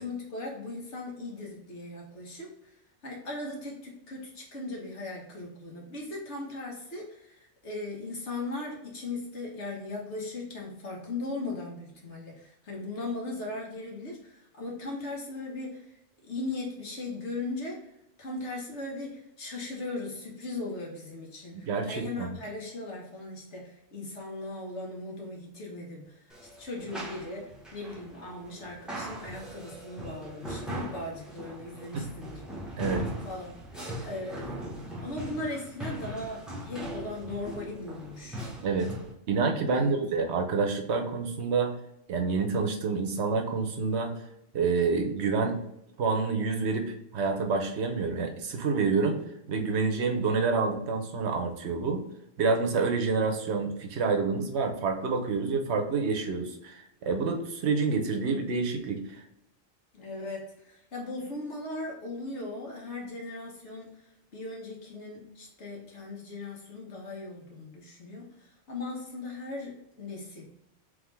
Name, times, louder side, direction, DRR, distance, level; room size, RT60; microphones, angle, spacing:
voice 1, 0.0-2.5 3.0-15.9 16.2-17.9 18.2-32.6 33.2-33.6 34.0-34.7 35.0-38.5 39.7-40.0 59.9-63.9 64.3-70.4, left 2 dB, 65° left, -1 dB, 1.5 m, -38 dB
voice 2, 21.6-22.3 31.9-32.1 32.8-33.1 38.6-38.9 39.3-41.7 42.1-44.1 44.5-45.6 46.0-49.2 49.5-52.0 52.4-59.2, right 4 dB, 65° right, 4 dB, 1.0 m, -28 dB
sound 1, 26.3-39.1, right 1 dB, ahead, 0.9 m, -40 dB
3.7 x 3.4 x 3.3 m, 0.82 s
omnidirectional pair, 1.3 m